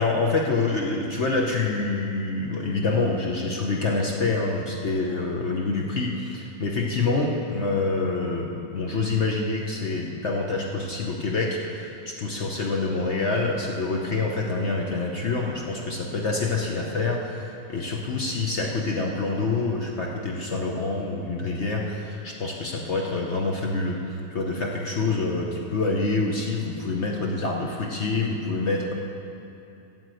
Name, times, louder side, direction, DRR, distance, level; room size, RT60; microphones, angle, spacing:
voice 1, 0.0-24.0 24.3-28.9, left 3 dB, 50° left, -1 dB, 1.0 m, -26 dB
9.3 x 8.1 x 7.7 m, 2.7 s
omnidirectional pair, 1.9 m